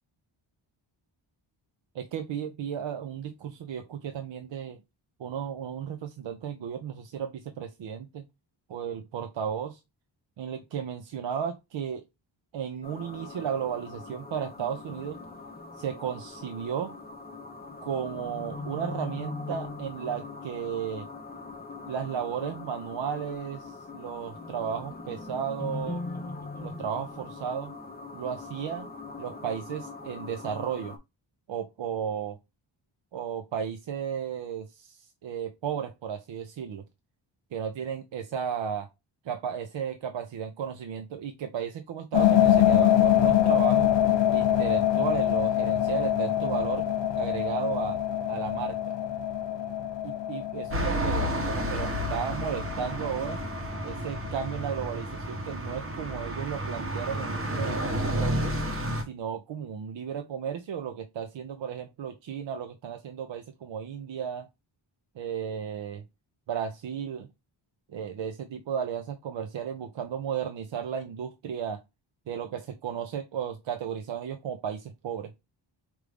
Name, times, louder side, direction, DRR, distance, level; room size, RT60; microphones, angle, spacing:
voice 1, 1.9-4.8 5.2-8.2 8.7-9.8 10.4-12.0 12.5-15.2 15.8-16.9 17.8-21.1 21.9-26.0 26.6-27.7 28.1-28.9 29.2-31.0 31.5-32.4 33.1-36.8 37.5-38.9 39.2-43.9 44.3-46.8 47.2-48.0 48.3-48.9 50.0-53.4 53.8-58.5 59.1-64.5 65.2-66.0 66.5-67.3 67.9-71.8 72.3-75.3, right 8 dB, 65° right, 0.6 m, -34 dB
sound 1, 12.8-31.0, left 3 dB, 20° left, 0.6 m, -41 dB
sound 2, 42.1-53.9, left 11 dB, 65° left, 0.6 m, -25 dB
sound 3, 50.7-59.0, equal, 25° right, 0.9 m, -31 dB
4.6 x 2.6 x 3.3 m
wide cardioid pair, 160°, 48 cm